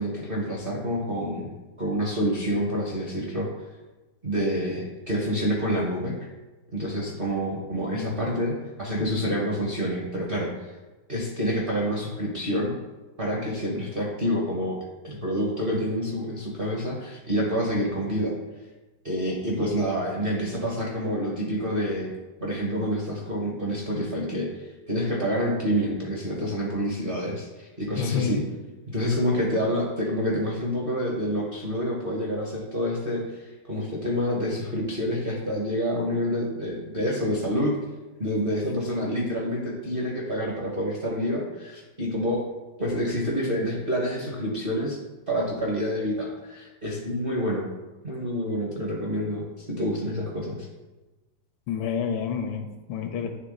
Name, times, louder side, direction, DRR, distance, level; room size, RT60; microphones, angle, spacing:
voice 1, 0.0-3.5 4.2-6.1 6.7-10.7 11.1-12.7 13.2-14.8 15.0-18.3 19.0-22.1 22.4-28.4 28.9-37.8 38.2-42.4 42.8-45.0 45.3-47.7 48.0-50.7, equal, 45° right, -4 dB, 0.7 m, -28 dB
voice 2, 28.0-28.5 51.7-53.3, left 7 dB, 80° left, 7 dB, 1.4 m, -29 dB
9.2 x 3.4 x 3.7 m, 1.2 s
omnidirectional pair, 2.3 m